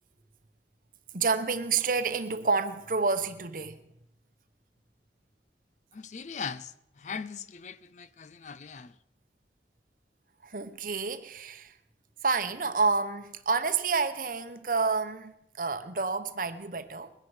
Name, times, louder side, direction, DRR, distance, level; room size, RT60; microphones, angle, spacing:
voice 1, 1.1-3.9 10.4-11.7 12.2-17.1, right 4 dB, 50° right, 0.9 m, -29 dB
voice 2, 5.9-9.0, left 6 dB, 40° left, 0.5 m, -40 dB
21.0 x 10.5 x 4.9 m
head